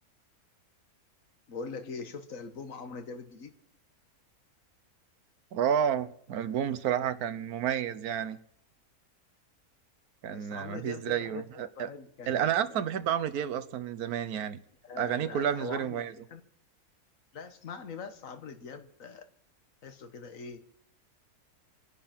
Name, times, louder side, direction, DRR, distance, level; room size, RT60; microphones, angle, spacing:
voice 1, 1.5-3.5 10.3-12.9 14.8-16.4 17.3-19.3 19.8-20.6, left 4 dB, 60° left, 1.7 m, -42 dB
voice 2, 5.5-8.4 10.2-11.9 12.3-14.6 15.0-16.1, right 9 dB, 75° right, 1.4 m, -30 dB
24.0 x 10.0 x 5.9 m
omnidirectional pair, 1.6 m